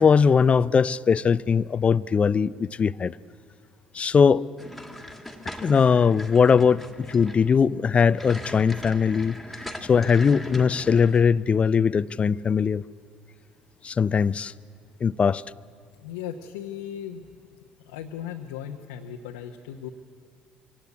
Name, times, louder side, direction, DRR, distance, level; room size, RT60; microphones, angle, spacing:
voice 1, 0.0-3.2 3.9-4.4 5.6-9.4 9.8-12.8 13.8-14.5 15.0-15.4, left 6 dB, 30° left, 19 dB, 0.5 m, -20 dB
sound 1, 4.6-11.2, left 1 dB, ahead, 2.2 m, -40 dB
voice 2, 16.0-17.3 17.8-19.9, left 9 dB, 75° left, 2 dB, 1.0 m, -37 dB
24.0 x 17.5 x 8.3 m, 2.1 s
hypercardioid pair, 60°, 4 cm